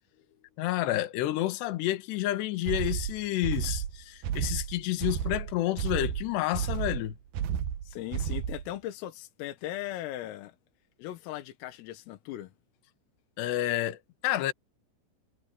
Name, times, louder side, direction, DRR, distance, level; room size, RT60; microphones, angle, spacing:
voice 1, 0.6-7.2 13.4-14.5, left 15 dB, 65° left, 3.2 m, -30 dB
sound 1, 2.7-8.7, right 9 dB, 75° right, 2.2 m, -32 dB
voice 2, 7.9-10.6 11.0-12.5, left 14 dB, 80° left, 4.1 m, -38 dB
omnidirectional pair, 6.0 m